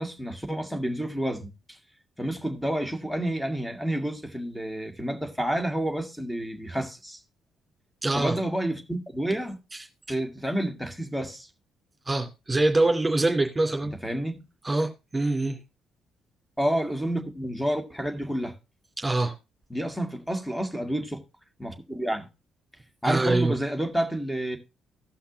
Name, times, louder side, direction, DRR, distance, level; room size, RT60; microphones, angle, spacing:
voice 1, 0.0-1.8 2.2-7.2 8.1-9.6 10.1-11.5 14.0-14.4 16.6-18.6 19.7-21.2 21.6-22.3 23.0-24.6, right 1 dB, 5° left, 2.0 m, -29 dB
voice 2, 8.0-8.4 12.1-13.9 14.6-15.6 19.0-19.3 23.0-23.5, right 2 dB, 20° right, 2.7 m, -24 dB
17.0 x 5.7 x 2.7 m
figure-of-eight pair, 40°, 0 cm